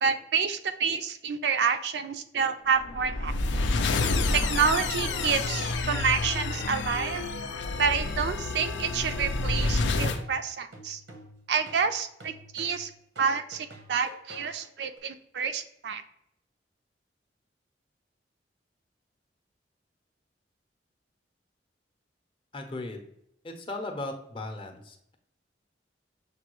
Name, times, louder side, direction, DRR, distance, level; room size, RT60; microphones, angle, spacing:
voice 1, 0.0-3.3 4.3-7.2 7.8-11.0 11.5-12.9 13.2-16.0, right 6 dB, 70° right, 8 dB, 0.4 m, -28 dB
sound 1, 2.8-10.2, left 3 dB, 90° left, 0.5 m, -29 dB
sound 2, 3.5-15.0, equal, 85° right, 0.9 m, -49 dB
voice 2, 22.5-23.1 23.4-25.1, left 2 dB, 30° left, 4 dB, 0.6 m, -37 dB
6.7 x 2.3 x 3.0 m, 0.73 s
head